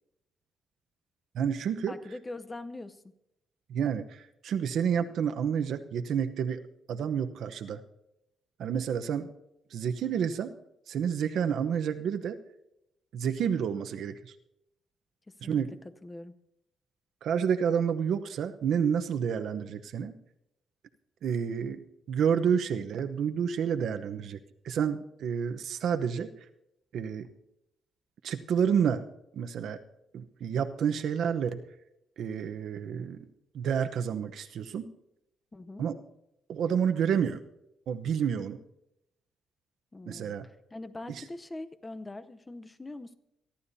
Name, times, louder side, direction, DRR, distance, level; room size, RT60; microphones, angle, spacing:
voice 1, 1.3-1.9 3.7-6.6 6.9-7.8 8.6-9.3 9.7-10.5 10.9-12.4 13.1-14.3 15.4-15.7 17.2-20.1 21.2-21.8 22.1-24.4 24.6-26.3 26.9-27.3 28.2-29.1 29.3-29.8 30.1-31.6 32.2-33.3 33.5-34.9 35.8-36.0 36.5-37.4 37.9-38.6 40.1-40.5 41.1-41.2, right 7 dB, 70° right, 8 dB, 0.9 m, -29 dB
voice 2, 1.9-3.0 15.3-15.6 16.0-16.4 35.5-35.9 39.9-40.4 40.7-43.1, left 2 dB, 15° left, 12 dB, 0.8 m, -42 dB
25.5 x 12.0 x 2.8 m, 0.84 s
cardioid pair, 115°, 0 cm